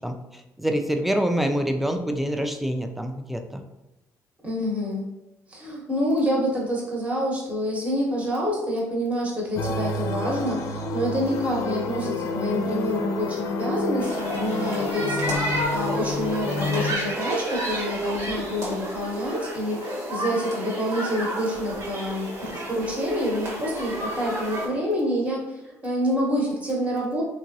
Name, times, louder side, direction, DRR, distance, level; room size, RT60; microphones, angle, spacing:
voice 1, 0.0-3.6, equal, ahead, 6 dB, 0.3 m, -26 dB
voice 2, 4.4-5.1 5.5-25.4 25.8-27.2, equal, 20° right, -3 dB, 0.9 m, -27 dB
sound 1, 9.6-16.9, left 2 dB, 70° left, 0.4 m, -29 dB
sound 2, 14.0-24.7, right 1 dB, 60° right, 1.2 m, -31 dB
2.9 x 2.6 x 2.6 m, 1.0 s
cardioid pair, 105°, 6 cm